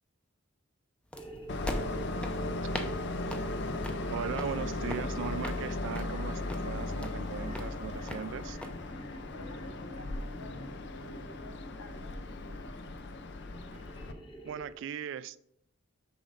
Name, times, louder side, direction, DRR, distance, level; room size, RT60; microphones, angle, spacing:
sound 1, 1.1-14.7, right 1 dB, 20° left, 1.0 m, -47 dB
sound 2, 1.1-8.7, left 1 dB, 5° left, 0.5 m, -44 dB
Train, 1.5-14.1, left 2 dB, 55° left, 0.6 m, -37 dB
voice 1, 4.1-8.6 14.4-15.4, right 7 dB, 60° right, 17 dB, 0.3 m, -38 dB
voice 2, 9.3-12.6, left 1 dB, 80° left, 7 dB, 0.9 m, -52 dB
6.9 x 5.3 x 3.7 m, 0.75 s
head